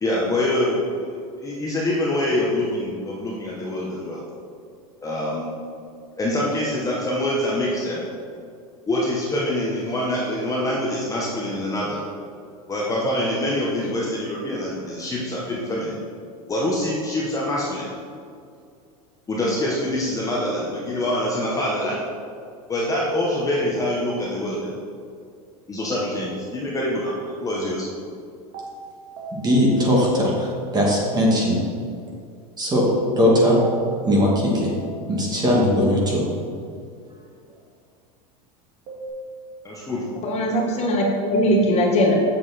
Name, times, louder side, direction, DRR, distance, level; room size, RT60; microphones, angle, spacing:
voice 1, 0.0-0.9 1.4-4.2 5.0-5.5 6.2-8.0 8.9-12.0 12.7-16.0 16.5-17.9 19.3-22.0 22.7-24.7 25.7-27.9 39.6-40.0, left 1 dB, 15° left, -4 dB, 1.2 m, -25 dB
sound 1, 28.5-30.8 33.0-35.3 38.9-39.1, right 1 dB, 50° right, 2.2 m, -36 dB
voice 2, 29.3-31.6 32.6-32.8 33.2-33.6 34.0-34.7 35.1-36.2, equal, 20° right, -3 dB, 2.2 m, -19 dB
voice 3, 40.2-42.1, equal, 35° left, -1 dB, 1.4 m, -20 dB
7.4 x 7.3 x 4.3 m, 2.3 s
supercardioid pair, 115°, 19 cm